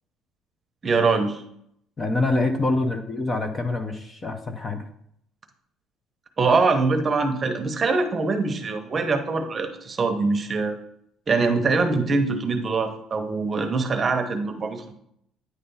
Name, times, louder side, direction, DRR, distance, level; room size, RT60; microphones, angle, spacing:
voice 1, 0.8-1.4 6.4-10.8 11.3-14.9, right 4 dB, 25° right, 6 dB, 0.8 m, -23 dB
voice 2, 2.0-4.8, left 2 dB, 20° left, 6 dB, 0.6 m, -25 dB
9.5 x 3.3 x 5.5 m, 0.72 s
cardioid pair, 155°, 0 cm